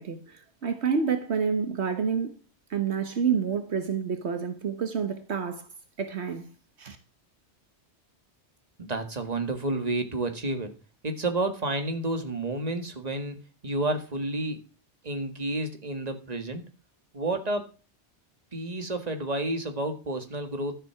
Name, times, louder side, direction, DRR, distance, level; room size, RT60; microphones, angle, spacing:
voice 1, 0.0-2.4 2.7-5.7 6.0-6.5 6.8-7.0, right 6 dB, 75° right, 1.5 m, -28 dB
voice 2, 8.8-10.8 11.0-14.6 15.0-16.6 17.1-17.7 18.5-20.7, right 2 dB, 35° right, 1.9 m, -30 dB
12.5 x 7.7 x 5.8 m
omnidirectional pair, 1.1 m